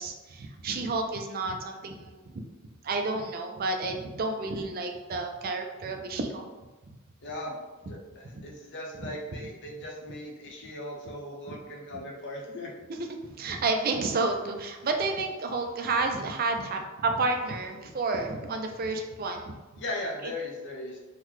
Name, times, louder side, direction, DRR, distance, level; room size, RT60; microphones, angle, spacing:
voice 1, 0.0-2.4 2.8-6.5 9.0-9.1 13.1-19.8 20.2-20.3, right 3 dB, 45° right, 4 dB, 0.4 m, -30 dB
voice 2, 7.2-7.6 7.9-12.7 19.8-21.0, left 1 dB, 55° left, -1 dB, 0.8 m, -38 dB
3.8 x 2.2 x 3.0 m, 1.2 s
head